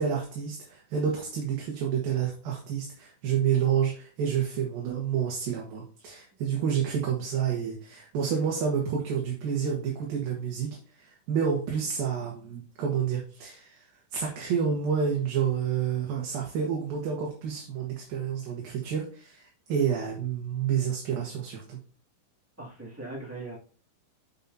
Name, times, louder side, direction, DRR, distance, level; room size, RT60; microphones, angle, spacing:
voice 1, 0.0-13.9 14.1-21.8, right 7 dB, 65° right, -1 dB, 3.1 m, -29 dB
voice 2, 22.6-23.6, right 2 dB, 10° right, -4 dB, 0.8 m, -39 dB
10.5 x 7.2 x 2.7 m, 0.42 s
omnidirectional pair, 5.0 m